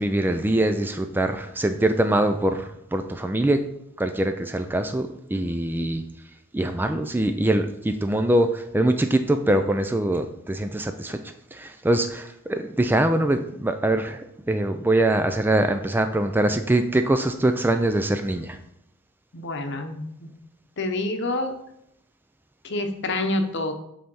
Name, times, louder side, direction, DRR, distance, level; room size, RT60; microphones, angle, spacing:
voice 1, 0.0-3.6 4.0-6.0 6.5-11.2 11.5-18.6, right 1 dB, 10° right, 8 dB, 0.3 m, -23 dB
voice 2, 19.3-20.3 20.8-21.6 22.6-23.7, left 2 dB, 55° left, 6 dB, 0.9 m, -27 dB
7.8 x 3.4 x 5.4 m, 0.76 s
head